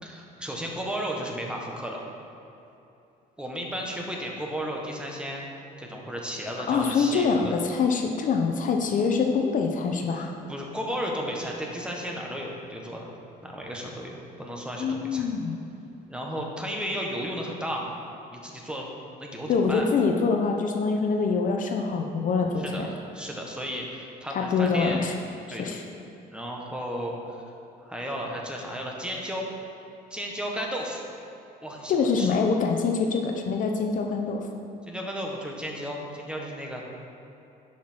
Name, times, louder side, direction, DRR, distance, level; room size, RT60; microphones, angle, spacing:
voice 1, 0.0-2.0 3.4-5.5 5.8-7.6 10.1-13.1 13.4-15.3 16.1-18.0 18.3-18.9 19.2-19.9 22.6-25.0 25.5-25.7 26.3-27.4 27.8-29.4 30.1-31.0 31.6-32.3 34.9-36.8, equal, 5° right, -1 dB, 1.4 m, -34 dB
voice 2, 6.7-10.3 14.8-15.6 19.5-22.9 24.3-25.1 25.5-25.8 31.9-34.5, left 5 dB, 50° left, 3 dB, 0.8 m, -25 dB
11.0 x 5.9 x 4.5 m, 2.8 s
cardioid pair, 110°, 17 cm